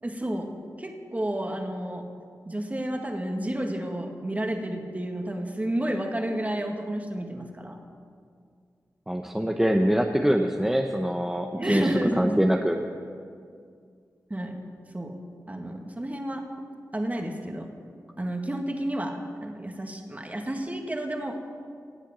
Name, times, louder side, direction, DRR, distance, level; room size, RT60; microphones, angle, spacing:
voice 1, 0.0-0.5 0.8-2.0 2.5-7.8 11.5-12.4 14.3-14.6 14.9-15.2 15.5-16.5 16.9-17.7 18.2-21.4, right 1 dB, 25° right, 3 dB, 1.9 m, -31 dB
voice 2, 9.1-11.9 12.2-12.8, equal, 5° right, 3 dB, 0.9 m, -24 dB
18.0 x 8.2 x 7.4 m, 2.2 s
cardioid pair, 55°, 7 cm